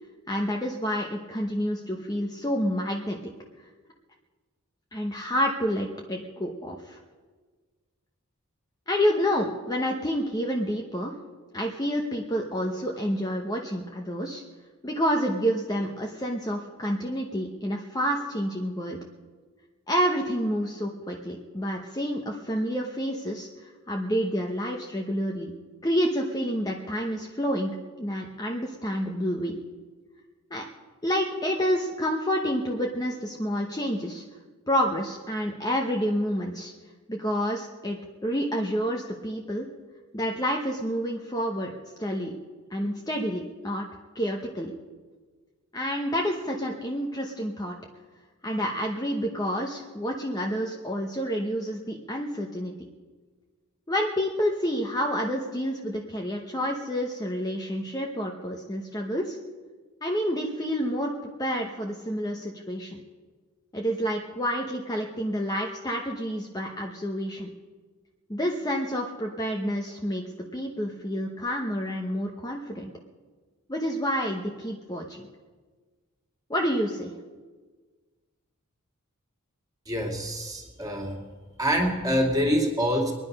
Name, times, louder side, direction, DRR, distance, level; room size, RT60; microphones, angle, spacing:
voice 1, 0.3-3.2 4.9-7.0 8.9-11.1 11.5-14.4 14.8-19.0 19.9-25.5 25.8-29.6 30.5-30.6 31.0-34.2 34.7-36.7 37.1-39.7 40.1-41.7 42.0-42.3 42.7-43.9 44.1-44.7 45.7-47.8 48.4-52.7 53.9-59.4 60.0-61.1 61.4-63.0 63.7-67.5 68.3-70.2 70.5-72.9 73.7-75.2 76.5-77.1, equal, 15° left, 0 dB, 0.9 m, -29 dB
voice 2, 79.9-81.2 81.6-83.1, equal, 15° right, 1 dB, 2.3 m, -25 dB
23.5 x 9.9 x 5.4 m, 1.4 s
head